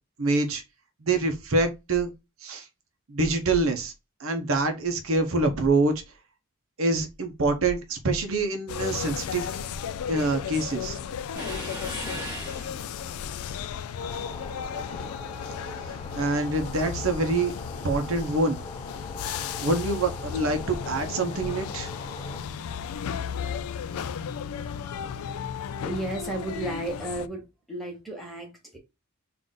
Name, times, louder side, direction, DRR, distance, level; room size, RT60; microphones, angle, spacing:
voice 1, 0.2-0.6 1.0-2.1 2.4-2.6 3.1-3.9 4.2-6.0 6.8-9.5 10.1-11.0 16.1-17.5 17.8-18.6 19.2-21.9, right 2 dB, 65° right, 0.7 m, -25 dB
sound 1, 8.7-27.3, left 7 dB, 75° left, 0.3 m, -35 dB
sound 2, 11.4-13.2, right 1 dB, 20° right, 1.8 m, -37 dB
sound 3, 14.0-22.4, left 2 dB, 20° left, 0.6 m, -42 dB
voice 2, 25.8-27.4 27.7-28.8, right 1 dB, ahead, 1.1 m, -33 dB
3.8 x 2.5 x 3.7 m
head